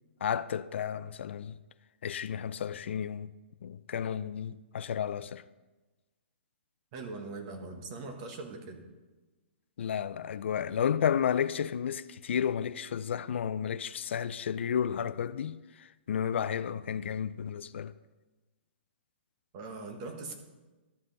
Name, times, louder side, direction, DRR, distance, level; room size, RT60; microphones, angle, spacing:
voice 1, 0.2-1.6 2.0-3.3 3.6-5.4 9.8-17.9, left 8 dB, 75° left, 0.3 m, -32 dB
voice 2, 6.9-8.8 19.5-20.3, right 3 dB, 35° right, 1.3 m, -41 dB
12.5 x 5.4 x 4.0 m
hypercardioid pair, 155°, 6 cm